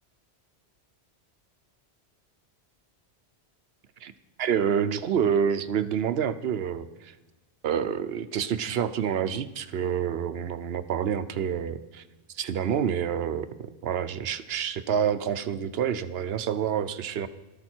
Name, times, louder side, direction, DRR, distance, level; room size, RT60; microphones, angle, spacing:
voice 1, 4.4-7.1 7.6-12.0 12.3-17.3, right 8 dB, 70° right, 12 dB, 0.9 m, -28 dB
19.0 x 13.0 x 4.4 m, 1.1 s
omnidirectional pair, 1.1 m